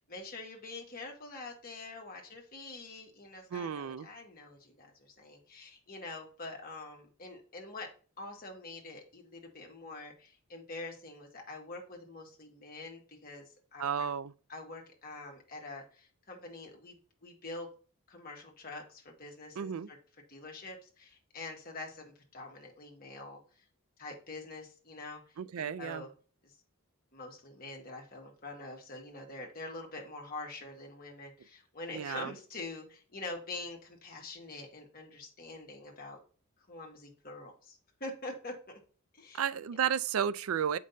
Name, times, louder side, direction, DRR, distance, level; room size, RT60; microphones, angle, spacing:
voice 1, 0.1-7.9 8.2-14.1 14.5-17.0 17.2-17.7 18.1-20.0 20.3-23.4 24.0-26.1 26.4-26.5 27.1-36.2 36.7-38.6 39.1-39.4 39.7-39.8, left 2 dB, 40° left, 1.7 m, -45 dB
voice 2, 3.5-4.1 13.8-14.3 19.6-19.9 25.4-26.0 31.9-32.3 39.3-40.8, right 8 dB, 75° right, 0.4 m, -33 dB
7.5 x 5.3 x 2.6 m
head